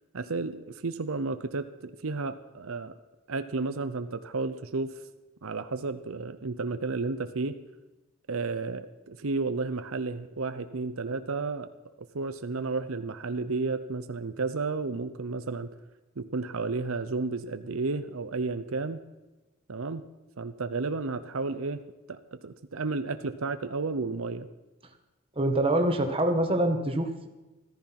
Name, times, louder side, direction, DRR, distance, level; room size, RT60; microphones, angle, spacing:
voice 1, 0.1-2.9 3.3-5.0 5.4-7.6 8.3-11.7 12.1-15.7 16.2-19.0 19.7-20.0 20.4-21.8 22.1-24.5, right 3 dB, 80° right, 10 dB, 0.7 m, -32 dB
voice 2, 25.3-27.3, right 1 dB, 25° right, 4 dB, 1.5 m, -25 dB
14.5 x 14.0 x 5.9 m, 1.1 s
head